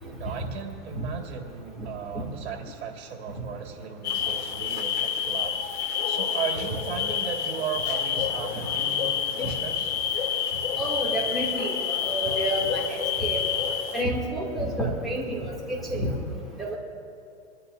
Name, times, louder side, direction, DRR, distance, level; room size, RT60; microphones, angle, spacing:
voice 1, 0.2-5.6 6.0-9.9, right 7 dB, 70° right, 2 dB, 2.3 m, -36 dB
sound 1, 4.0-14.0, left 8 dB, 75° left, 2.3 m, -28 dB
voice 2, 10.8-13.4 13.9-16.1 16.6-16.7, right 1 dB, ahead, -8 dB, 2.7 m, -29 dB
25.5 x 13.0 x 2.7 m, 2.5 s
supercardioid pair, 160°, 34 cm